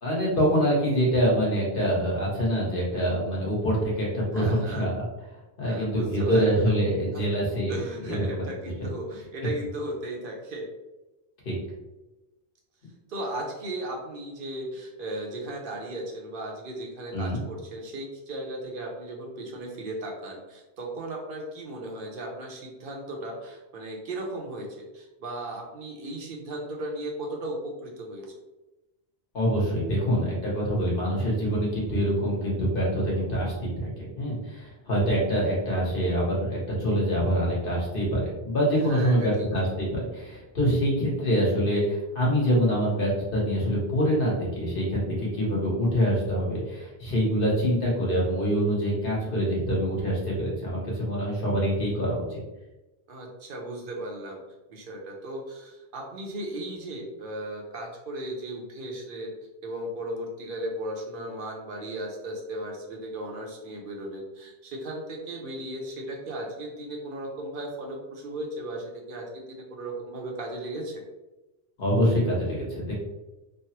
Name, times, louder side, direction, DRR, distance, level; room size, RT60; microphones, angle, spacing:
voice 1, 0.0-5.1 5.6-8.4 11.4-11.6 17.1-17.4 29.3-52.4 71.8-72.9, equal, 55° left, -4 dB, 1.1 m, -25 dB
voice 2, 4.3-4.9 5.6-6.8 7.1-7.3 7.7-10.7 13.1-24.7 24.9-28.3 38.8-39.5 53.1-54.4 54.7-59.3 59.6-71.0, right 1 dB, 60° right, 0 dB, 0.7 m, -36 dB
3.2 x 2.0 x 2.8 m, 1.0 s
omnidirectional pair, 1.1 m